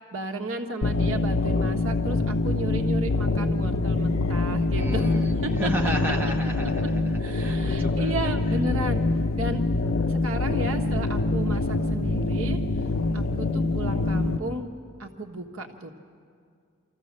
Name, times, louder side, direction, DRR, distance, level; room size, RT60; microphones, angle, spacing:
voice 1, 0.1-5.1 5.4-5.9 6.8-6.9 7.2-9.0 9.3-9.6 10.1-12.6 13.1-14.6 15.0-15.9, right 1 dB, 85° right, 4 dB, 1.5 m, -33 dB
sound 1, 0.8-14.4, left 2 dB, 80° left, 0.7 m, -25 dB
voice 2, 4.7-8.6, equal, 10° right, -1 dB, 1.2 m, -33 dB
25.5 x 14.5 x 7.5 m, 2.2 s
head